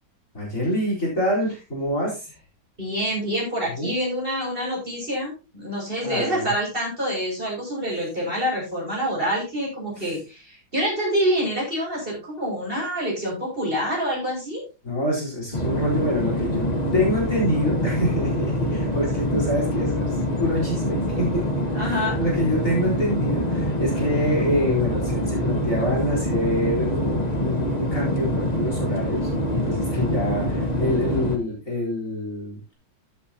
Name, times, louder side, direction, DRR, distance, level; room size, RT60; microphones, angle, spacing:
voice 1, 0.3-2.3 3.7-3.9 6.0-6.5 10.0-10.1 14.8-32.7, left 1 dB, 40° left, -3 dB, 4.6 m, -26 dB
voice 2, 2.8-14.6 21.7-22.2, equal, 25° right, -4 dB, 6.6 m, -26 dB
sound 1, 15.5-31.4, equal, 25° left, 1.4 m, -25 dB
14.0 x 8.4 x 2.9 m, 0.29 s
omnidirectional pair, 2.1 m